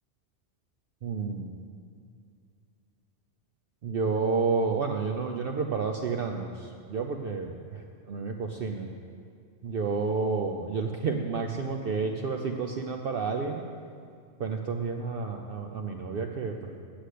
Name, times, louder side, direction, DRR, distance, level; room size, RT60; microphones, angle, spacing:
voice 1, 1.0-1.6 3.8-9.0 9.6-13.6 14.4-16.8, right 4 dB, 60° right, 3 dB, 0.7 m, -30 dB
8.1 x 7.9 x 8.2 m, 2.3 s
omnidirectional pair, 1.2 m